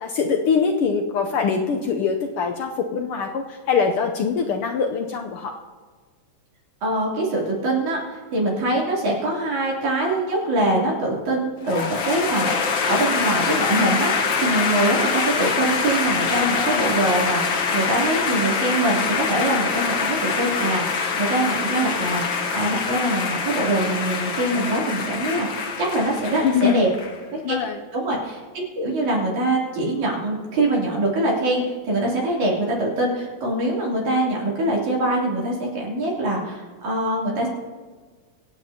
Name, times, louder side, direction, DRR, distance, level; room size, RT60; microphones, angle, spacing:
voice 1, 0.0-5.6 20.6-20.7 26.4-26.8 27.4-27.8, left 6 dB, 80° left, 3 dB, 1.2 m, -23 dB
voice 2, 6.8-26.9 27.3-27.6 27.9-28.4 28.7-37.5, right 1 dB, 80° right, -4 dB, 4.4 m, -23 dB
sound 1, 11.6-27.2, left 5 dB, 55° left, 1.4 m, -24 dB
24.5 x 9.1 x 2.8 m, 1.5 s
omnidirectional pair, 3.3 m